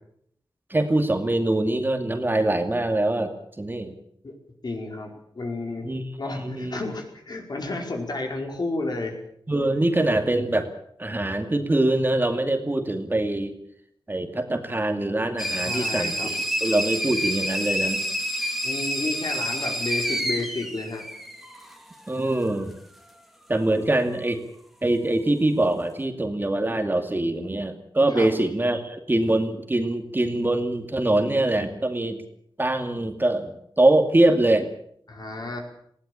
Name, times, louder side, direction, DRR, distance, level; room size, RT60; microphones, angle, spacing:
voice 1, 0.7-3.9 5.8-6.8 9.5-10.7 11.0-13.5 14.1-18.0 22.1-22.7 23.5-24.4 24.8-32.2 32.6-34.7, right 1 dB, 25° right, 6 dB, 2.5 m, -23 dB
voice 2, 4.6-5.9 6.2-9.2 15.6-16.4 18.6-21.0 23.8-23.9 28.1-28.3 35.1-35.7, left 2 dB, 55° left, 3 dB, 4.9 m, -31 dB
sound 1, 15.4-21.8, equal, ahead, 2.6 m, -28 dB
20.0 x 17.0 x 8.7 m, 0.68 s
wide cardioid pair, 90°, 9 cm